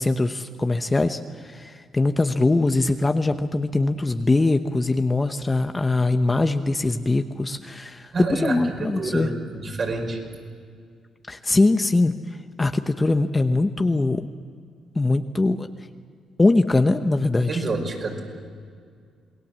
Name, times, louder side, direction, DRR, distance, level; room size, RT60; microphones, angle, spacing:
voice 1, 0.0-9.3 11.3-12.1 12.6-14.3 14.9-15.7 16.4-17.6, left 2 dB, 20° left, 8 dB, 0.9 m, -22 dB
voice 2, 8.1-10.2 17.5-18.2, right 3 dB, 45° right, 2 dB, 5.5 m, -28 dB
27.5 x 19.5 x 7.5 m, 2.1 s
cardioid pair, 90°, 0 cm